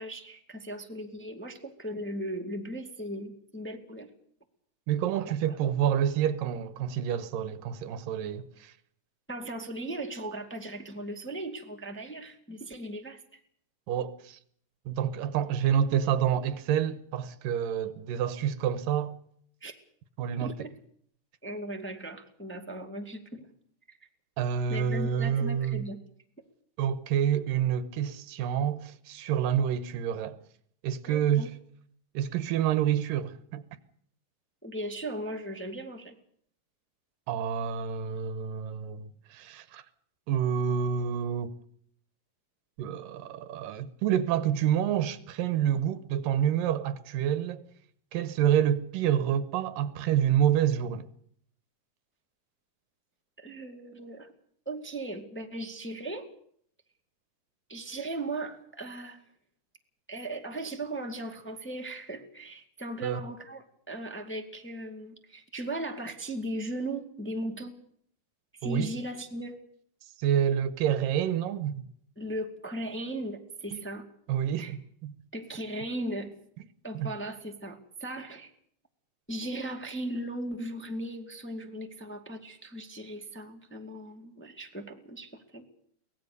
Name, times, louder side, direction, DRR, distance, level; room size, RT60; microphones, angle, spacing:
voice 1, 0.0-4.1 5.3-5.6 9.3-13.4 19.6-19.7 20.4-20.7 21.4-23.5 23.9-24.0 24.7-26.0 31.1-31.5 34.6-36.1 53.4-54.3 54.6-56.3 57.7-59.2 60.1-67.8 68.5-69.5 72.1-74.1 74.6-74.7 75.3-76.4 76.8-78.5 79.3-85.6, right 1 dB, 5° left, 1.6 m, -37 dB
voice 2, 4.9-8.7 13.9-14.4 14.9-19.2 20.2-20.5 24.4-25.8 26.8-30.4 30.8-31.5 32.1-33.6 37.3-39.8 40.3-41.5 42.8-47.6 48.1-51.1 63.0-63.2 68.6-68.9 70.2-71.8 73.7-73.8 74.3-75.1 76.9-77.1, right 9 dB, 90° right, 2.9 m, -28 dB
23.5 x 19.0 x 6.8 m
omnidirectional pair, 3.8 m